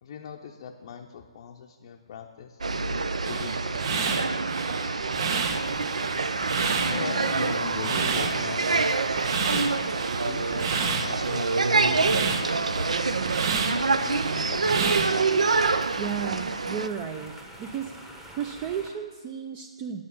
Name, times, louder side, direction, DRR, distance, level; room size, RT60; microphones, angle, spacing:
voice 1, 0.0-2.6 3.3-4.4 5.1-5.7 6.8-8.7 9.4-9.9 10.2-13.3 13.9-15.0, left 7 dB, 50° left, 2 dB, 0.6 m, -40 dB
sound 1, 2.6-16.9, right 4 dB, 85° right, 0.4 m, -26 dB
sound 2, 3.3-15.8, right 5 dB, 45° right, 0.8 m, -30 dB
sound 3, 5.5-18.9, right 1 dB, 10° right, 1.0 m, -46 dB
voice 2, 16.0-17.3 17.6-17.9 18.3-20.0, right 8 dB, 30° right, 5 dB, 0.4 m, -33 dB
8.6 x 6.3 x 5.5 m, 1.4 s
hypercardioid pair, 135°, 3 cm